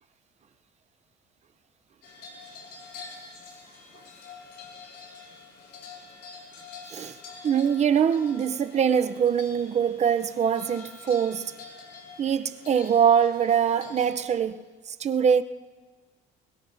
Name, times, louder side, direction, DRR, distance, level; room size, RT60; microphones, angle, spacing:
sound 1, 2.0-14.4, left 4 dB, 80° left, 4.2 m, -46 dB
voice 1, 7.4-11.5 12.2-14.7 15.0-15.4, right 8 dB, 40° right, 0.7 m, -23 dB
21.5 x 21.5 x 2.7 m
cardioid pair, 110°, 17 cm